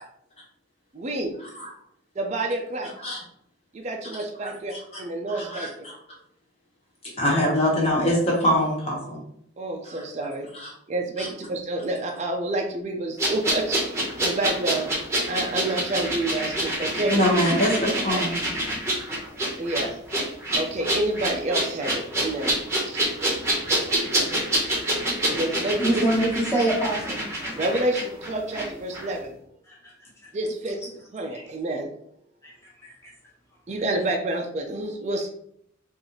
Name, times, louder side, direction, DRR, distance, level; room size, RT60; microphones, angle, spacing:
voice 1, 0.9-1.3 2.2-2.9 3.7-4.7 5.0-5.7 7.3-7.4 9.6-10.5 10.9-13.8 14.2-14.9 15.3-17.2 18.1-18.2 19.6-19.9 20.5-22.6 22.9-23.0 25.3-26.0 27.5-29.3 30.3-30.8 31.1-31.9 33.7-35.3, right 2 dB, 35° right, 2 dB, 0.4 m, -28 dB
voice 2, 5.3-5.7 7.2-9.2 9.9-10.0 10.5-10.7 11.2-11.3 17.1-18.3, equal, 30° left, -3 dB, 1.2 m, -23 dB
sound 1, 13.2-28.7 28.9-29.1, right 1 dB, 15° right, 0.8 m, -27 dB
voice 3, 25.8-27.2 29.7-30.1 31.3-31.4 32.4-32.5 32.8-33.1, right 1 dB, 15° left, -5 dB, 1.1 m, -25 dB
3.8 x 2.5 x 3.0 m, 0.70 s
head